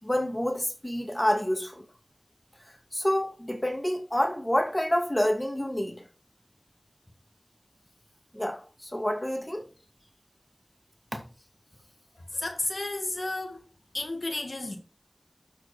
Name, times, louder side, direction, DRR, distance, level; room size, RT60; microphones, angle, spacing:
voice 1, 0.0-1.8 2.9-6.0 8.3-9.7 11.1-11.2, left 1 dB, 25° left, 2.7 m, -28 dB
voice 2, 12.3-13.6 13.9-14.8, left 2 dB, 80° left, 1.7 m, -32 dB
12.5 x 6.0 x 4.3 m
wide cardioid pair, 45°, 0 cm